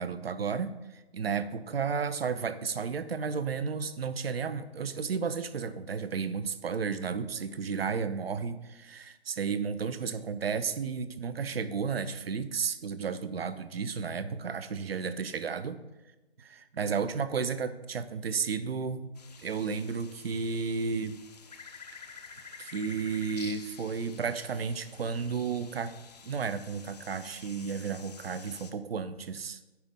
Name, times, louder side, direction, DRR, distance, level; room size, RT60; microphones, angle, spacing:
voice 1, 0.0-15.8 16.4-19.1 19.4-21.2 22.6-25.9 26.2-29.6, right 5 dB, 65° right, 13 dB, 0.6 m, -33 dB
sound 1, 19.2-28.7, left 5 dB, 40° left, 0.5 m, -50 dB
9.6 x 4.0 x 3.6 m, 1.0 s
figure-of-eight pair, 150°, 32 cm